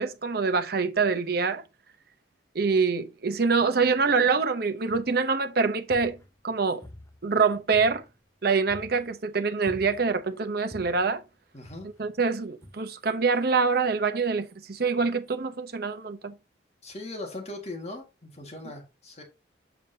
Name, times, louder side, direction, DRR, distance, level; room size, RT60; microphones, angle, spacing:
voice 1, 0.0-1.6 2.5-6.2 6.4-6.8 7.2-8.0 8.4-11.2 12.0-16.3, right 4 dB, 55° right, 0.8 m, -25 dB
sound 1, 4.9-5.3 5.7-6.5 6.8-8.3 8.7-9.1 9.7-10.3 10.7-11.1 11.6-12.2 12.6-12.7, equal, 15° left, 0.9 m, -47 dB
voice 2, 11.5-11.9 16.8-19.2, left 2 dB, 35° left, 1.9 m, -39 dB
7.2 x 6.8 x 2.8 m
head